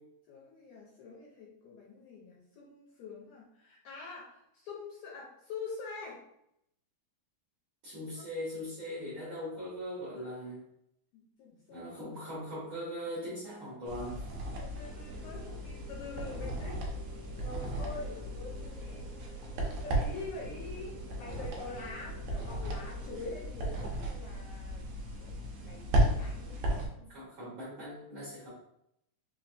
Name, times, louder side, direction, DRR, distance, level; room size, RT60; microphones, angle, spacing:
voice 1, 0.3-6.2 8.2-8.3 10.2-10.3 11.1-11.9 14.6-16.9 17.4-19.1 19.8-24.9 25.2-27.1, left 4 dB, 75° left, -4 dB, 1.8 m, -45 dB
voice 2, 7.8-10.6 11.7-14.2 27.1-28.5, equal, 60° right, -9 dB, 1.4 m, -40 dB
sound 1, 13.9-26.9, right 1 dB, 75° right, 1.6 m, -35 dB
sound 2, 15.0-23.1, left 2 dB, 90° left, 2.4 m, -53 dB
5.1 x 2.5 x 2.6 m, 0.77 s
omnidirectional pair, 3.8 m